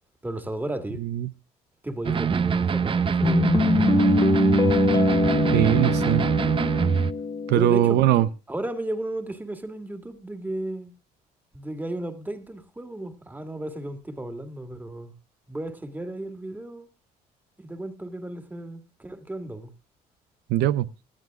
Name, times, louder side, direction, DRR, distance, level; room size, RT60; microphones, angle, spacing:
voice 1, 0.2-1.0 1.8-3.5 7.5-8.0 8.5-10.9 11.5-15.1 15.5-16.9 17.6-19.7, right 1 dB, 10° right, 1.9 m, -34 dB
voice 2, 1.0-1.3 5.5-6.3 7.5-8.3 20.5-20.9, right 13 dB, 80° right, 0.6 m, -21 dB
sound 1, 2.0-7.1, right 6 dB, 30° right, 0.6 m, -23 dB
Guitar, 3.2-8.3, left 4 dB, 25° left, 1.1 m, -24 dB
18.5 x 12.5 x 2.4 m
cardioid pair, 110°, 17 cm